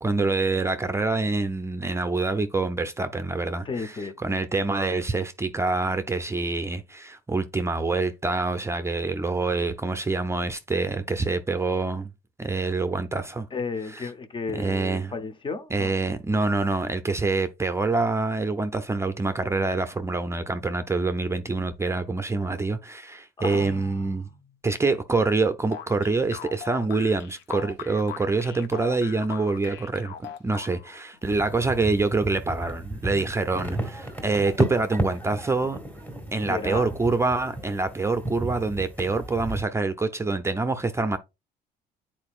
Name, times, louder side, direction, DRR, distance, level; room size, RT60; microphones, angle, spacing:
voice 1, 0.0-12.1 12.4-13.5 13.9-14.1 14.5-15.1 15.7-24.3 24.6-30.1 30.4-35.8 36.3-41.2, right 3 dB, 15° right, 0.5 m, -26 dB
voice 2, 3.6-4.1 13.5-15.9 23.4-24.3 36.5-36.9, left 4 dB, 30° left, 0.8 m, -33 dB
sound 1, 25.7-31.0, left 9 dB, 90° left, 0.7 m, -40 dB
sound 2, 31.2-39.6, right 1 dB, 10° left, 1.7 m, -33 dB
9.6 x 4.4 x 2.4 m
cardioid pair, 110°, 17 cm